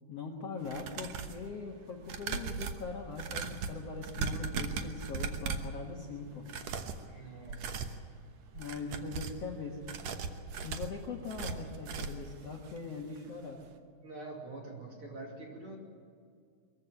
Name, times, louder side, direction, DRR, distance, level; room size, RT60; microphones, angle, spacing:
voice 1, 0.1-6.6 8.5-9.8 10.6-13.7, left 4 dB, 55° left, 0 dB, 1.9 m, -41 dB
sound 1, 0.6-1.4 2.0-5.8 6.4-7.0 7.4-8.0 8.5-9.4 9.8-12.3 12.7-12.8 13.1-13.2, right 5 dB, 75° right, 1.5 m, -38 dB
voice 2, 7.1-7.9 8.9-9.2 14.0-15.8, right 2 dB, 35° right, 0 dB, 3.1 m, -46 dB
23.0 x 15.0 x 9.4 m, 2.2 s
omnidirectional pair, 4.8 m